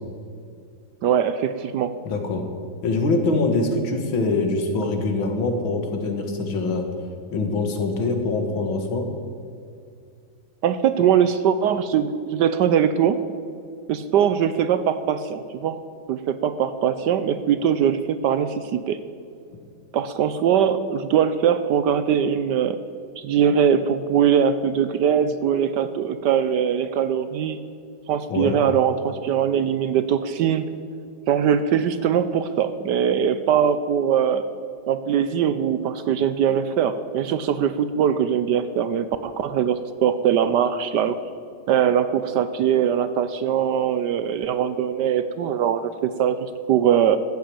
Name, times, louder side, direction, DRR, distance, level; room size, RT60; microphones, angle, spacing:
voice 1, 1.0-1.9 10.6-13.2 13.9-15.8 16.1-19.0 19.9-22.8 23.2-27.6 28.1-30.6 31.3-34.5 34.9-41.2 41.7-47.2, right 8 dB, 70° right, 12 dB, 1.1 m, -21 dB
voice 2, 2.1-2.5 2.8-6.9 7.3-9.1 28.3-28.6, left 3 dB, 75° left, 4 dB, 2.4 m, -24 dB
14.0 x 8.3 x 8.7 m, 2.4 s
omnidirectional pair, 2.2 m